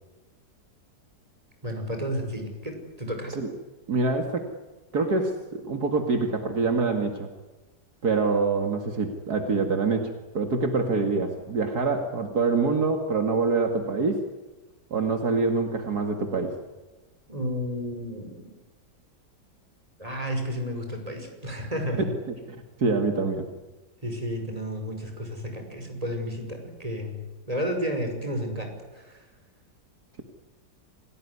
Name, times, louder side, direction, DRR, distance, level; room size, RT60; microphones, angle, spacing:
voice 1, 1.6-3.3 17.3-18.5 20.0-22.1 24.0-29.2, equal, 20° right, 4 dB, 5.8 m, -32 dB
voice 2, 3.9-4.5 4.9-7.3 8.0-14.2 14.9-16.6 22.8-23.4, right 4 dB, 65° right, 5 dB, 2.6 m, -25 dB
28.0 x 18.0 x 9.7 m, 1.2 s
omnidirectional pair, 1.8 m